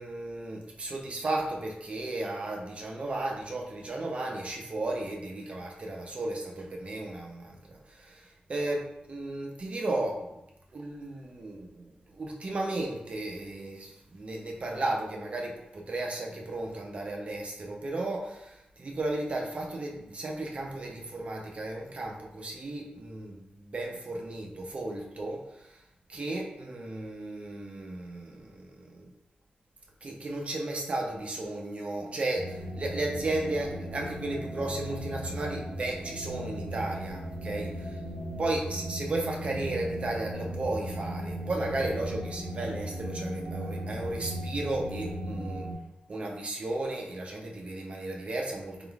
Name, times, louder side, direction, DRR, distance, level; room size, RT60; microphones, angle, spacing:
voice 1, 0.0-10.4 10.7-25.8 26.1-29.1 30.0-38.0 38.4-45.7 46.1-48.9, right 2 dB, 40° right, 0 dB, 0.6 m, -34 dB
sound 1, 32.4-45.7, equal, ahead, 0.8 m, -37 dB
4.0 x 3.6 x 2.3 m, 0.88 s
wide cardioid pair, 170°, 3 cm